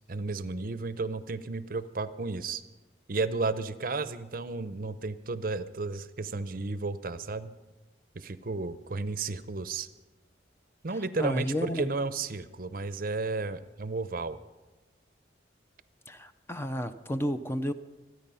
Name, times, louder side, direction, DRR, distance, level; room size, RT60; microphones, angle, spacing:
voice 1, 0.1-2.6 3.1-7.5 8.1-9.9 10.8-14.4, right 3 dB, 50° right, 14 dB, 0.7 m, -33 dB
voice 2, 11.2-11.9 16.1-17.7, equal, 15° left, 10 dB, 0.5 m, -31 dB
26.0 x 9.8 x 5.6 m, 1.2 s
head